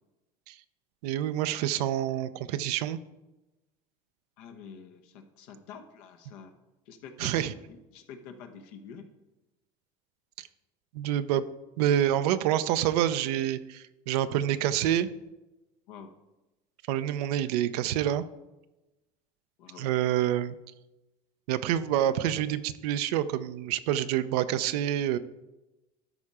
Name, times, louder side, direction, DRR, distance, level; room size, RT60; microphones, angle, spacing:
voice 1, 1.0-3.0 7.2-7.5 10.4-10.5 10.9-11.4 11.8-15.1 16.9-18.2 19.8-20.5 21.5-25.2, right 11 dB, 85° right, 12 dB, 0.5 m, -27 dB
voice 2, 4.4-6.5 6.9-9.1 15.9-16.1 19.6-19.9, left 6 dB, 80° left, 5 dB, 1.1 m, -47 dB
12.0 x 4.3 x 4.8 m, 1.0 s
supercardioid pair, 90°, 20 cm